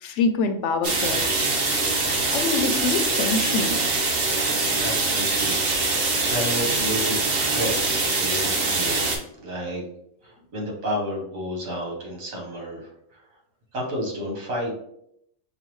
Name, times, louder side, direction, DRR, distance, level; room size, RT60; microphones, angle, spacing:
voice 1, 0.0-1.4 2.3-3.8, left 4 dB, 70° left, 7 dB, 0.8 m, -25 dB
sound 1, 0.8-9.2, right 3 dB, 50° right, 0.9 m, -23 dB
voice 2, 4.7-9.0 9.4-9.8 10.2-13.2 13.7-14.8, equal, 80° right, -1 dB, 1.6 m, -31 dB
5.8 x 2.2 x 3.0 m, 0.74 s
omnidirectional pair, 1.4 m